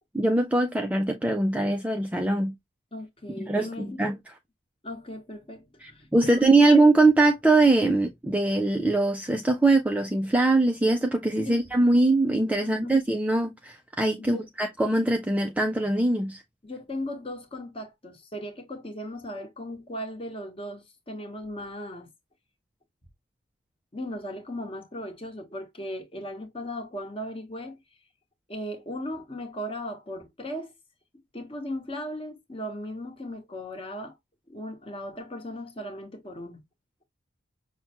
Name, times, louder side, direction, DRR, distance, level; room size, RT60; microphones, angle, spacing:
voice 1, 0.1-2.5 3.5-3.7 4.0-4.1 5.8-16.4, right 2 dB, 5° right, 0.3 m, -22 dB
voice 2, 2.9-4.0 4.8-6.5 11.4-11.7 12.6-13.0 14.2-14.5 16.6-22.1 23.9-27.8 28.5-30.7 31.3-34.2 34.5-36.6, left 1 dB, 25° left, 0.9 m, -37 dB
5.7 x 2.1 x 2.8 m
head